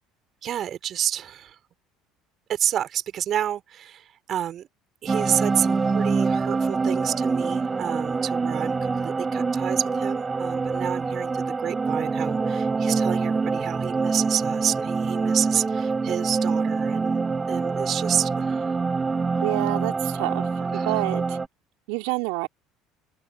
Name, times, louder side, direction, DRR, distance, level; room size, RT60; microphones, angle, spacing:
voice 1, 0.4-1.6 2.5-4.7 5.0-17.2 17.5-18.8 20.7-21.0, right 10 dB, 45° right, 4.3 m, -29 dB
sound 1, 5.1-21.5, right 4 dB, 25° right, 7.0 m, -25 dB
voice 2, 19.4-20.4 20.7-21.4 21.9-22.5, right 32 dB, 65° right, 3.4 m, -27 dB
hypercardioid pair, 65°, 0 cm